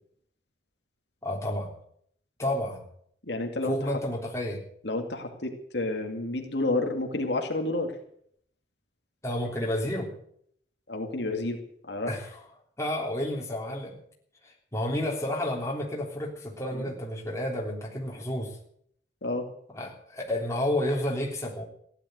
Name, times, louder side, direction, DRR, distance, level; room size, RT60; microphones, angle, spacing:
voice 1, 1.2-1.7 2.4-2.8 3.6-4.6 9.2-10.1 12.1-12.4 12.8-14.0 14.7-18.5 19.7-21.6, left 1 dB, 15° left, -1 dB, 3.5 m, -30 dB
voice 2, 3.3-4.0 4.8-7.9 10.9-11.6 11.9-12.1 16.7-16.9 19.2-19.5, left 2 dB, 70° left, 3 dB, 2.2 m, -30 dB
15.5 x 10.5 x 7.9 m, 0.66 s
head